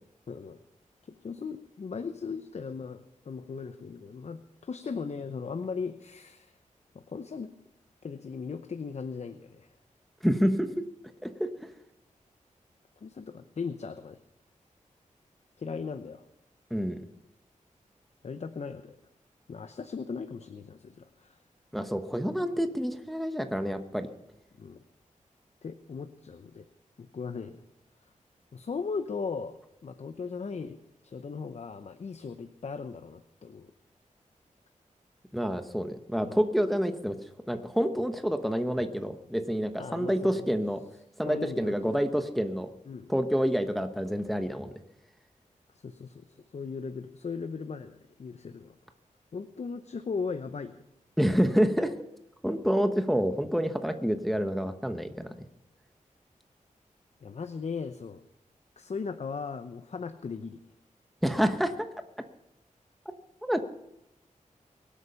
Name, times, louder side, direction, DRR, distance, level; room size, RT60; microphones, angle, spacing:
voice 1, 0.3-0.6 1.1-6.5 6.9-7.5 8.0-9.7 13.0-14.2 15.6-16.2 18.2-19.0 19.5-21.4 24.6-24.8 25.6-26.7 27.0-27.6 28.5-33.7 36.2-36.4 39.8-40.5 41.2-42.0 42.9-43.1 45.8-48.7 49.3-50.8 57.2-58.2 58.8-60.6, left 5 dB, 55° left, 9 dB, 0.8 m, -38 dB
voice 2, 10.2-10.8 11.2-11.5 16.7-17.0 21.7-24.1 35.3-37.2 37.5-40.8 41.2-42.7 43.1-44.7 51.2-51.9 52.4-55.3 61.2-61.9 63.4-63.6, equal, ahead, 7 dB, 1.0 m, -28 dB
23.0 x 8.2 x 5.7 m, 0.85 s
wide cardioid pair, 100°, 13 cm